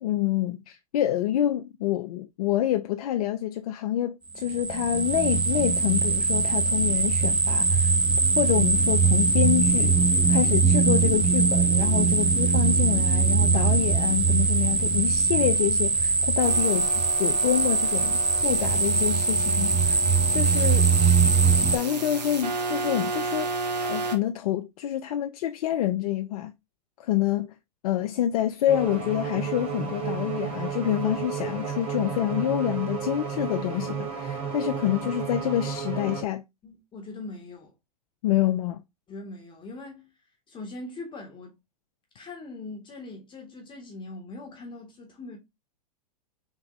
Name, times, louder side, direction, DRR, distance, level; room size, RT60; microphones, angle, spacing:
voice 1, 0.0-7.9 8.4-16.9 17.2-20.0 20.3-21.2 21.6-23.6 23.8-26.5 27.0-27.5 27.8-36.4 38.2-38.8, left 12 dB, 65° left, 0.4 m, -27 dB
sound 1, 4.4-21.8, right 4 dB, 5° right, 0.3 m, -22 dB
sound 2, 16.4-24.2, right 3 dB, 85° right, 1.0 m, -33 dB
sound 3, 28.7-36.2, right 7 dB, 45° right, 2.4 m, -32 dB
voice 2, 36.6-37.7 39.1-40.1 40.5-41.5 42.1-45.4, left 2 dB, 25° left, 1.2 m, -41 dB
3.6 x 3.3 x 3.0 m
hypercardioid pair, 105°, 21 cm